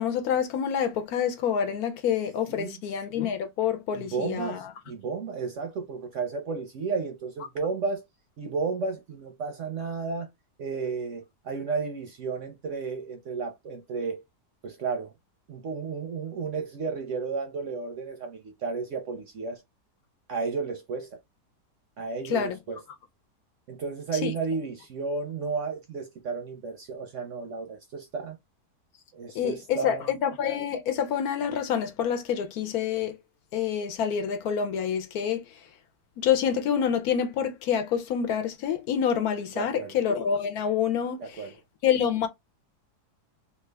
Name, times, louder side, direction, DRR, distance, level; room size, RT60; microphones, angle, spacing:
voice 1, 0.0-4.7 22.3-22.6 24.2-24.3 29.3-33.2 33.5-35.4 36.2-41.4 41.8-42.3, left 8 dB, 70° left, 1.0 m, -27 dB
voice 2, 3.9-8.0 8.4-10.3 10.6-14.2 14.6-15.1 15.5-19.6 20.3-21.2 22.0-22.8 23.7-28.4 29.1-30.1 39.5-40.0 41.2-41.5, right 4 dB, 65° right, 0.8 m, -33 dB
3.1 x 2.3 x 3.3 m
omnidirectional pair, 1.8 m